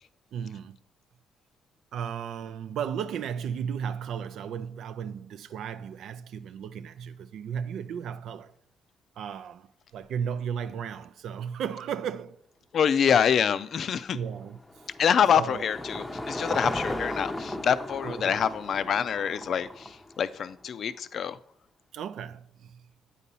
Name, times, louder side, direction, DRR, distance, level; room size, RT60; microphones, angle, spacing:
voice 1, 0.3-0.8 1.9-8.5 9.2-12.4 14.1-14.6 15.3-15.7 18.0-18.5 21.9-22.8, right 8 dB, 75° right, 0.3 m, -35 dB
voice 2, 12.7-14.2 15.0-21.4, left 8 dB, 60° left, 0.4 m, -26 dB
Car passing by / Engine, 14.0-20.5, left 1 dB, 10° left, 0.6 m, -36 dB
8.3 x 4.1 x 5.3 m
cardioid pair, 90°, 0 cm